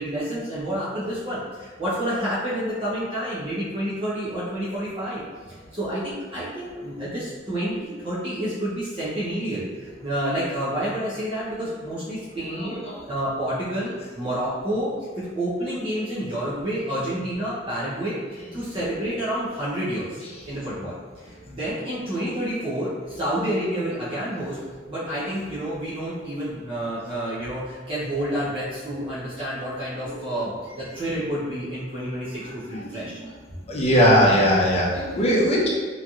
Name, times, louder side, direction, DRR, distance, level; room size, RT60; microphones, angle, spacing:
voice 1, 0.0-5.2 5.7-6.0 6.3-14.9 15.2-20.2 20.5-24.6 24.9-33.2, right 1 dB, 30° right, -10 dB, 0.7 m, -29 dB
voice 2, 12.6-13.1 30.0-30.2 33.0-33.1 33.7-35.7, equal, 35° left, -4 dB, 0.6 m, -20 dB
3.0 x 2.7 x 2.4 m, 1.5 s
head